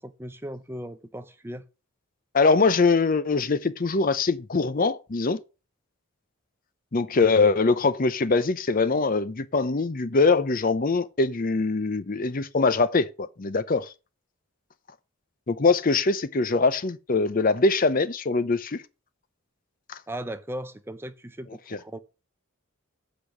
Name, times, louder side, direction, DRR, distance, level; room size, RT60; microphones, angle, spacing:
voice 1, 0.0-1.6 20.1-22.0, right 1 dB, 10° right, 0.6 m, -37 dB
voice 2, 2.3-5.4 6.9-13.9 15.5-18.8 19.9-20.0 21.7-21.8, left 3 dB, 40° left, 0.6 m, -23 dB
8.3 x 5.1 x 7.2 m
head